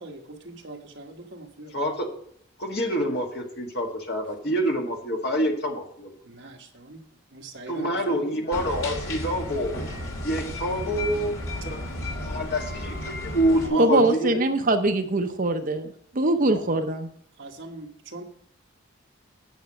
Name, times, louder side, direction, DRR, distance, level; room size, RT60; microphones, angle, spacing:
voice 1, 0.0-1.7 6.2-7.0 7.3-8.3 12.3-12.6 13.6-14.6 16.3-16.8 17.4-18.2, right 3 dB, 60° right, 2 dB, 1.3 m, -38 dB
voice 2, 1.7-2.1 2.6-6.1 7.7-9.7 10.2-11.4 11.6-11.8 12.2-14.4, equal, 50° left, 1 dB, 1.8 m, -26 dB
sound 1, 8.5-13.7, left 1 dB, 80° left, 2.5 m, -33 dB
voice 3, 13.8-15.9 16.1-17.1, right 2 dB, 40° right, 7 dB, 0.7 m, -22 dB
9.2 x 6.5 x 6.3 m, 0.66 s
head